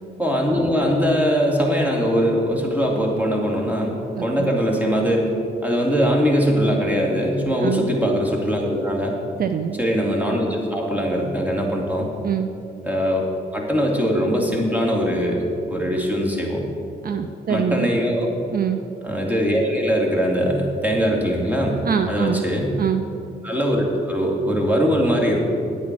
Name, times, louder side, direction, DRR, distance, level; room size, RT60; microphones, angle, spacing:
voice 1, 0.2-5.3 5.6-9.2 9.8-12.1 12.8-15.4 15.7-16.7 17.5-18.3 19.0-21.8 22.1-22.7 23.4-25.4, equal, 10° right, -1 dB, 2.6 m, -21 dB
voice 2, 4.1-4.5 7.6-7.9 9.4-9.8 12.2-12.5 17.0-17.9 18.5-18.8 21.8-22.5 22.8-23.1, right 7 dB, 55° right, 8 dB, 0.6 m, -24 dB
9.4 x 8.7 x 6.0 m, 2.6 s
cardioid pair, 60°, 18 cm